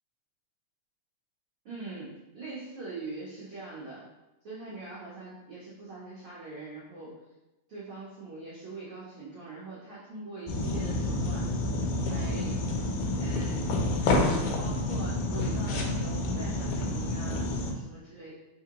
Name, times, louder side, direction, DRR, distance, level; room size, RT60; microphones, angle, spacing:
voice 1, 1.6-4.0 4.4-7.2 7.7-11.5 12.1-12.6 13.2-13.8 14.1-18.3, right 3 dB, 85° right, -8 dB, 1.2 m, -42 dB
sound 1, 10.5-17.7, left 2 dB, 85° left, 2.2 m, -29 dB
4.8 x 3.3 x 2.9 m, 0.97 s
omnidirectional pair, 3.8 m